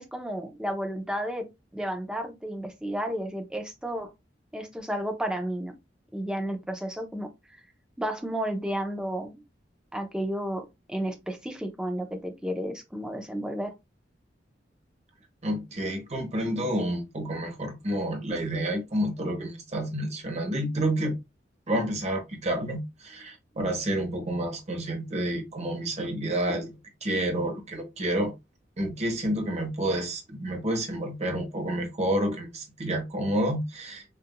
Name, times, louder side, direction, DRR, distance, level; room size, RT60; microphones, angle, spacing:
voice 1, 0.0-1.5 1.7-4.1 4.5-5.7 6.1-7.3 8.0-9.4 9.9-13.7, equal, 5° right, 0.7 m, -32 dB
voice 2, 15.4-21.2 21.7-28.3 28.8-34.0, right 1 dB, 40° right, 1.1 m, -29 dB
6.7 x 2.6 x 2.2 m
head